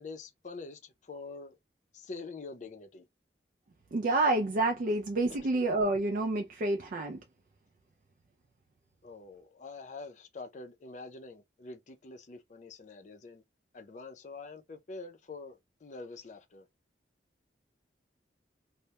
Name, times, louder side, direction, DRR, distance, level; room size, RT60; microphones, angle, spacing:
voice 1, 0.0-1.6 1.9-3.0 5.3-5.5 9.0-13.4 13.7-16.7, left 3 dB, 45° left, 0.4 m, -45 dB
voice 2, 3.9-7.2, right 2 dB, 50° right, 0.3 m, -28 dB
2.2 x 2.0 x 2.8 m
head